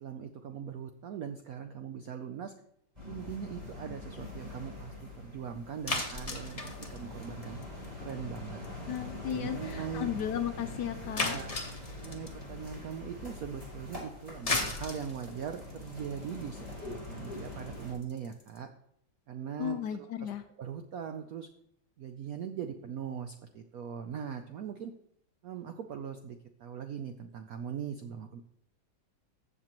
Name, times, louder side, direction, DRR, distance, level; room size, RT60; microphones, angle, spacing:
voice 1, 0.0-2.5 3.1-7.6 8.0-8.6 9.3-10.1 11.2-11.6 12.0-18.7 19.3-20.3 20.6-21.5 22.0-24.9 25.4-28.4, right 8 dB, 80° right, 7 dB, 0.8 m, -41 dB
sound 1, 2.9-17.9, left 2 dB, 15° right, 4.5 m, -44 dB
sound 2, 5.9-8.1 8.4-8.7 9.0-9.1 9.3-9.4 9.7-9.8 10.2-10.3 11.2-12.4 14.2-18.6, left 3 dB, 25° left, 0.9 m, -35 dB
voice 2, 8.9-11.4 19.6-20.4, left 9 dB, 75° left, 9 dB, 1.0 m, -35 dB
15.0 x 6.8 x 3.0 m, 0.74 s
omnidirectional pair, 2.2 m